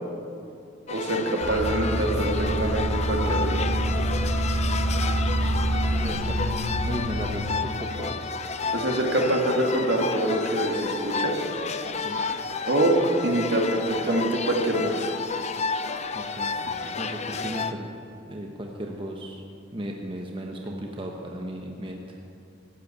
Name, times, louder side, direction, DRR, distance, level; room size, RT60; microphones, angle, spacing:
sound 1, 0.9-17.7, left 5 dB, 40° left, 0.6 m, -31 dB
voice 1, 0.9-3.7 8.7-11.4 12.7-13.0 13.2-15.1, right 1 dB, 70° right, 0 dB, 2.2 m, -25 dB
sound 2, 1.4-7.5, right 1 dB, 15° left, 2.2 m, -26 dB
voice 2, 6.0-8.2 12.0-12.2 16.1-16.5 16.9-17.9 18.3-19.4 19.7-22.0, right 1 dB, 30° right, 1 dB, 1.0 m, -35 dB
14.0 x 8.6 x 8.7 m, 2.7 s
head